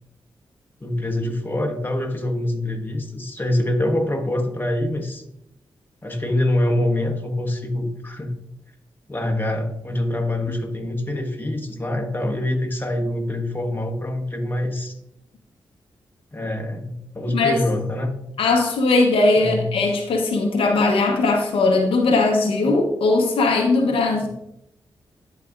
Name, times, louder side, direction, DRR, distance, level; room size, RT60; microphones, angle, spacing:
voice 1, 0.8-5.2 6.0-8.3 9.1-15.0 16.3-18.1 19.4-19.7 24.2-24.3, left 1 dB, 20° left, 3 dB, 1.2 m, -25 dB
voice 2, 18.4-24.3, left 3 dB, 90° left, 2 dB, 0.8 m, -19 dB
11.5 x 4.1 x 2.5 m, 0.80 s
cardioid pair, 50°, 9 cm